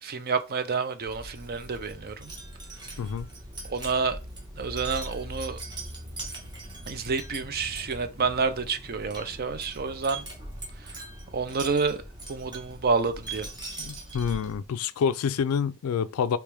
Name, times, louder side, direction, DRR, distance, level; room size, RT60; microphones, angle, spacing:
voice 1, 0.0-2.3 3.7-4.2 4.6-5.6 6.9-10.3 10.8-11.0 11.3-12.0 12.3-13.5, right 4 dB, 45° right, 0.6 m, -29 dB
Wind chime, 1.0-14.7, right 1 dB, 20° right, 1.3 m, -41 dB
voice 2, 3.0-3.3 13.8-16.4, left 7 dB, 80° left, 0.3 m, -27 dB
4.8 x 3.0 x 3.4 m
head